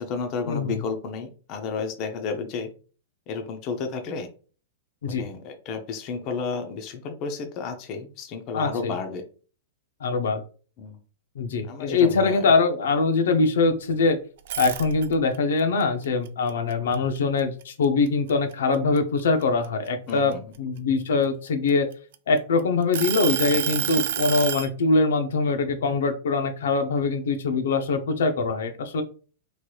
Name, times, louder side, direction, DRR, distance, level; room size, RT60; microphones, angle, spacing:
voice 1, 0.0-2.7 3.3-4.3 5.1-9.3 10.8-11.0 11.6-12.4 20.1-20.4, left 5 dB, 35° left, 5 dB, 0.5 m, -32 dB
voice 2, 8.5-8.9 10.0-10.4 11.4-14.2 14.6-21.9 22.3-29.0, left 4 dB, 85° left, 8 dB, 0.5 m, -23 dB
sound 1, 14.4-15.4 15.8-17.6 18.1-18.3 18.7-20.6 21.3-22.4 22.9-24.7, right 11 dB, 65° right, 0.3 m, -28 dB
3.1 x 2.9 x 2.2 m, 0.39 s
supercardioid pair, 155°, 0 cm